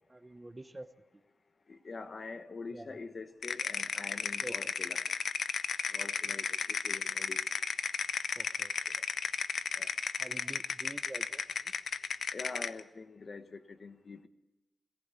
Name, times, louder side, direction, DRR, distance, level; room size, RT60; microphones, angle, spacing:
voice 1, 0.1-0.9 2.7-3.0 4.4-4.7 8.4-9.0 10.2-11.4, right 2 dB, 20° right, 11 dB, 0.9 m, -47 dB
voice 2, 1.7-5.0 5.9-7.4 9.8-9.9 12.3-14.3, left 4 dB, 45° left, 10 dB, 1.1 m, -45 dB
sound 1, 3.4-12.8, left 6 dB, 70° left, 0.6 m, -34 dB
21.5 x 15.0 x 8.3 m, 1.0 s
wide cardioid pair, 110°, 0 cm